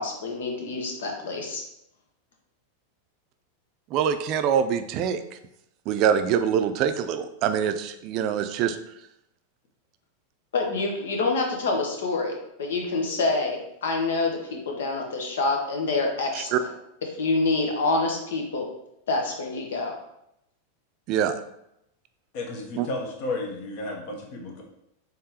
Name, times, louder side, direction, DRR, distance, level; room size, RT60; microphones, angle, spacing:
voice 1, 0.0-1.6 10.5-16.7 17.2-18.7 19.1-19.9, left 3 dB, 85° left, 2 dB, 0.9 m, -27 dB
voice 2, 3.9-5.2 5.9-8.8 16.3-16.6 21.1-21.4 22.8-22.9, right 8 dB, 45° right, 9 dB, 0.4 m, -24 dB
voice 3, 22.3-24.6, left 2 dB, 55° left, 1 dB, 0.9 m, -33 dB
3.7 x 3.3 x 2.9 m, 0.79 s
hypercardioid pair, 125°, 0 cm